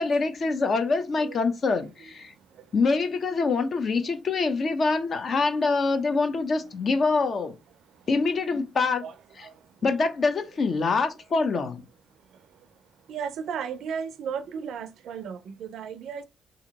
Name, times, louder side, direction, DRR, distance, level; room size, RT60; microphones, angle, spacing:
voice 1, 0.0-2.3 2.7-7.5 8.1-9.0 9.8-11.8, left 4 dB, 50° left, 0.6 m, -25 dB
voice 2, 13.1-16.2, right 7 dB, 75° right, 0.4 m, -35 dB
2.8 x 2.5 x 3.9 m
cardioid pair, 90°, 0 cm